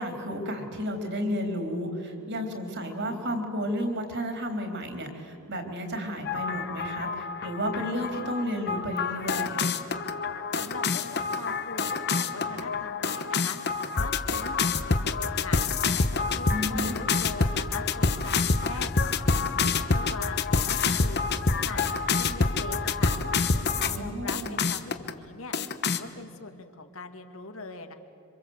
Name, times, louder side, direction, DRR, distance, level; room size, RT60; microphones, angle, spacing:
voice 1, 0.0-9.6 16.5-17.0 23.9-24.6, equal, 50° right, 4 dB, 3.9 m, -32 dB
sound 1, 6.2-24.0 24.3-25.1 25.5-26.0, left 4 dB, 50° left, 1.1 m, -27 dB
voice 2, 10.5-13.6 14.0-15.6 16.0-18.9 19.3-21.2 21.6-23.1 23.5-25.5 25.9-27.9, left 3 dB, 65° left, 6 dB, 2.2 m, -41 dB
27.0 x 26.0 x 8.1 m, 2.6 s
head